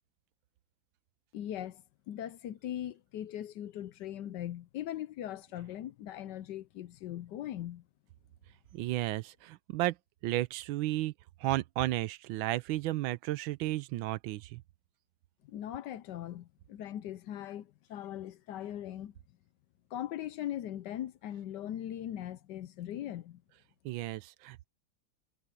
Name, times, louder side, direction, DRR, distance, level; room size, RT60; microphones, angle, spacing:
voice 1, 1.3-7.8 15.4-19.1 19.9-23.4, left 11 dB, 70° left, 1.2 m, -40 dB
voice 2, 8.7-10.0 10.2-11.1 11.4-14.6 23.8-24.7, right 16 dB, 85° right, 1.4 m, -33 dB
omnidirectional pair, 2.1 m